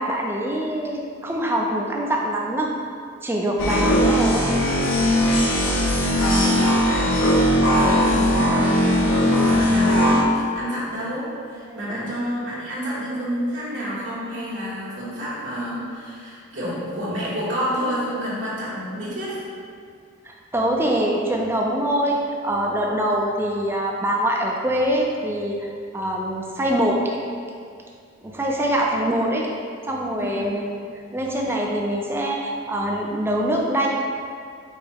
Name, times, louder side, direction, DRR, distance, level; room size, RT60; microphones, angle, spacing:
voice 1, 0.0-2.7 3.2-4.5 11.7-12.1 20.2-25.6 25.9-27.0 28.2-29.5 29.9-30.9 31.1-33.9, right 1 dB, 10° right, -2 dB, 0.4 m, -24 dB
sound 1, 3.6-10.2, equal, 70° left, 0.7 m, -19 dB
voice 2, 5.9-19.4 30.2-30.5, equal, 70° right, -8 dB, 1.2 m, -29 dB
4.8 x 2.1 x 4.5 m, 2.2 s
head